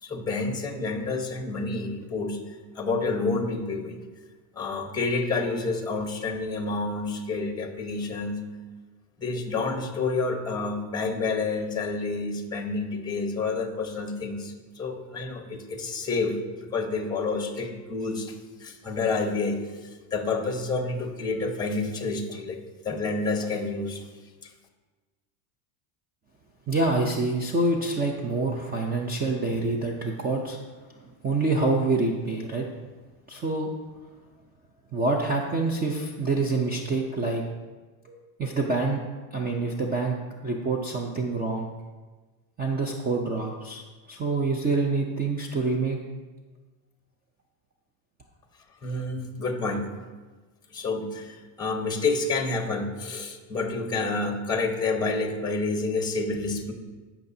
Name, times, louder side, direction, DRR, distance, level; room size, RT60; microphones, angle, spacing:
voice 1, 0.0-2.4 2.7-4.0 4.5-8.4 9.2-22.6 22.8-24.0 24.4-24.5 48.8-49.9 50.7-56.7, left 3 dB, 10° left, 4 dB, 1.0 m, -29 dB
voice 2, 26.7-30.6 31.0-32.6 33.3-33.7 34.9-37.4 38.1-39.0 39.3-40.2 40.4-41.7 42.6-43.8 44.1-46.0, right 3 dB, 20° right, 0 dB, 0.5 m, -26 dB
16.0 x 5.9 x 2.7 m, 1.3 s
cardioid pair, 140°, 50 cm